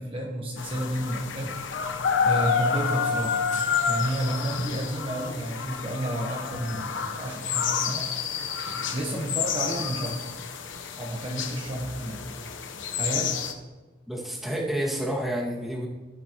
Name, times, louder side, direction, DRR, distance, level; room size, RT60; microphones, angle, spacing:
voice 1, 0.0-1.5 2.2-3.4 3.9-8.1 8.9-10.2 10.9-12.2 12.9-13.3, right 1 dB, 30° right, -2 dB, 1.3 m, -31 dB
sound 1, 0.6-13.5, left 6 dB, 90° left, 1.0 m, -29 dB
voice 2, 14.1-15.9, right 1 dB, ahead, -4 dB, 2.1 m, -29 dB
16.5 x 10.0 x 3.0 m, 1.2 s
head